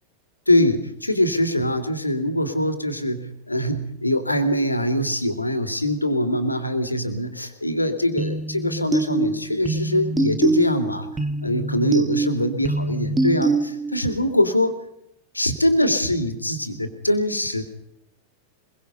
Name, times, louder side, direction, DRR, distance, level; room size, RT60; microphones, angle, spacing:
voice 1, 0.5-11.1 11.4-14.7 15.3-17.6, left 1 dB, 85° left, 8 dB, 2.9 m, -23 dB
sound 1, 8.2-14.1, right 3 dB, 10° right, 2.0 m, -24 dB
24.0 x 23.0 x 5.5 m, 0.78 s
figure-of-eight pair, 90°, 0 cm